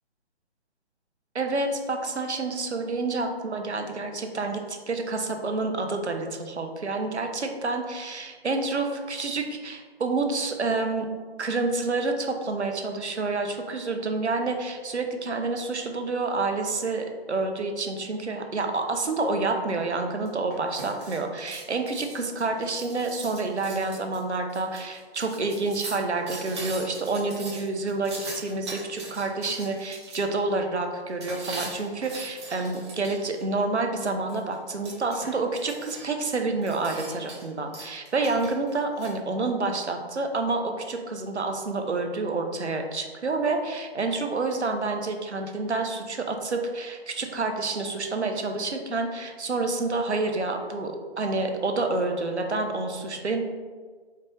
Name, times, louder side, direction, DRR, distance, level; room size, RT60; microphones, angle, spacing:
voice 1, 1.3-11.1 11.4-53.4, right 3 dB, 85° right, 4 dB, 0.7 m, -28 dB
sound 1, 20.3-30.2 31.2-33.4 34.3-36.2 36.6-37.5 37.7-39.1, right 2 dB, 25° right, 0.7 m, -40 dB
4.3 x 2.5 x 3.3 m, 1.5 s
figure-of-eight pair, 140°, 33 cm